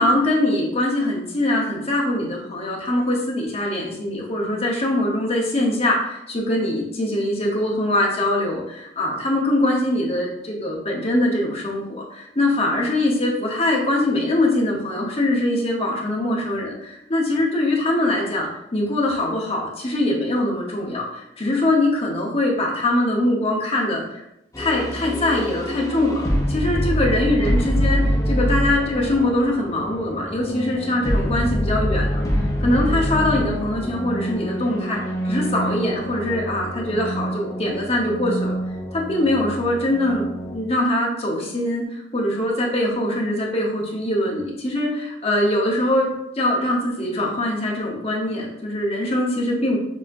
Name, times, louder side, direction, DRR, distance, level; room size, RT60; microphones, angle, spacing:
voice 1, 0.0-24.2 24.6-32.2 32.6-38.5 38.9-49.8, left 1 dB, 35° left, -2 dB, 1.0 m, -22 dB
sound 1, 24.5-40.6, equal, 20° left, 0.7 m, -25 dB
6.9 x 2.9 x 2.6 m, 0.83 s
head